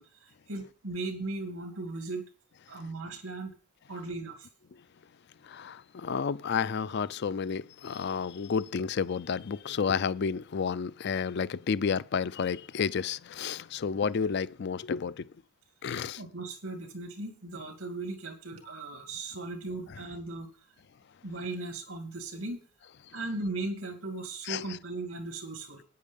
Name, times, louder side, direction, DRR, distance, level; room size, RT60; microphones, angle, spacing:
voice 1, 0.0-2.2 2.7-3.5 3.9-4.5 16.2-20.5 21.2-22.6 23.1-25.8, right 2 dB, 85° right, 2.5 m, -37 dB
voice 2, 5.4-15.3 15.8-16.2 24.5-24.6, left 6 dB, 50° left, 0.4 m, -31 dB
9.4 x 8.5 x 5.5 m
head